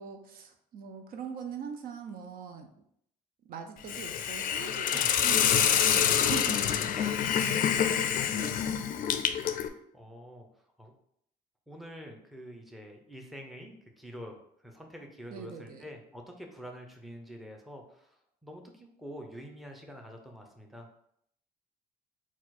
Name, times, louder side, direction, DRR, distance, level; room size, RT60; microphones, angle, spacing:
voice 1, 0.0-2.7 3.4-8.0 8.3-8.7 15.3-15.9, right 6 dB, 60° right, 5 dB, 0.5 m, -42 dB
Hiss, 3.9-9.7, left 9 dB, 55° left, 0.4 m, -27 dB
voice 2, 4.9-5.3 5.7-6.3 6.8-6.9 7.8-8.0 9.9-10.5 10.8-10.9 11.7-18.1 18.4-21.0, equal, ahead, 2 dB, 0.7 m, -46 dB
4.2 x 2.4 x 4.2 m, 0.71 s
cardioid pair, 110°, 17 cm